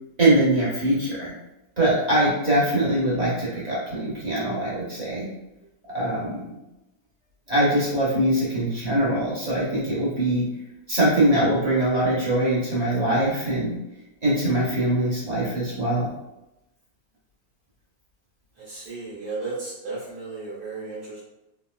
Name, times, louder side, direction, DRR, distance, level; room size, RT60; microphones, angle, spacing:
voice 1, 0.2-1.3 1.8-5.3 5.9-6.4 7.5-10.5 10.9-13.8 14.2-16.1, right 1 dB, 30° right, -7 dB, 0.8 m, -22 dB
voice 2, 18.6-21.2, right 3 dB, 65° right, -6 dB, 1.2 m, -34 dB
3.5 x 2.8 x 2.2 m, 0.92 s
omnidirectional pair, 1.9 m